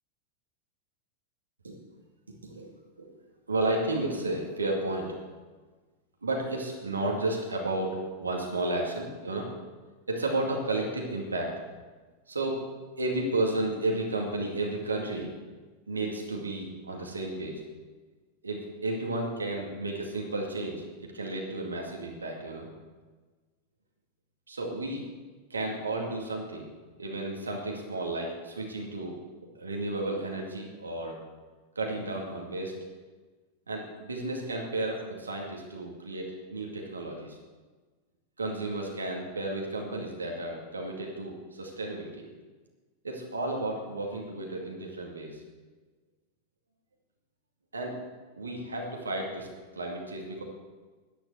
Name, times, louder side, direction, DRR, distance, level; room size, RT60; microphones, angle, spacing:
voice 1, 3.5-5.2 6.2-9.5 10.1-11.5 12.3-12.6 13.0-15.3 15.9-17.6 18.4-20.8 21.1-22.7 24.5-25.0 25.5-26.7 27.0-29.2 29.5-31.2 31.8-32.8 33.7-37.4 38.4-42.2 43.0-45.4 47.7-47.9 48.4-49.5 49.7-50.4, right 2 dB, 75° right, 0 dB, 2.3 m, -32 dB
10.5 x 10.5 x 7.8 m, 1.3 s
figure-of-eight pair, 90°, 0 cm